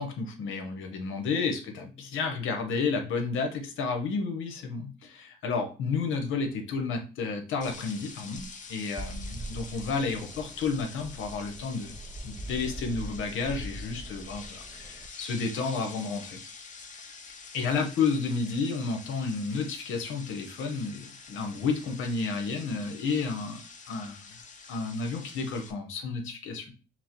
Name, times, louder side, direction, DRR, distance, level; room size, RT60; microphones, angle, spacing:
voice 1, 0.0-12.0 12.2-16.4 17.5-23.6 23.9-24.2 24.7-26.7, left 4 dB, 85° left, 4 dB, 0.9 m, -31 dB
sound 1, 7.6-25.7, left 4 dB, 40° left, 0.7 m, -47 dB
sound 2, 9.0-15.1, right 1 dB, 15° right, 0.3 m, -42 dB
6.0 x 2.0 x 2.9 m, 0.34 s
cardioid pair, 90°, 20 cm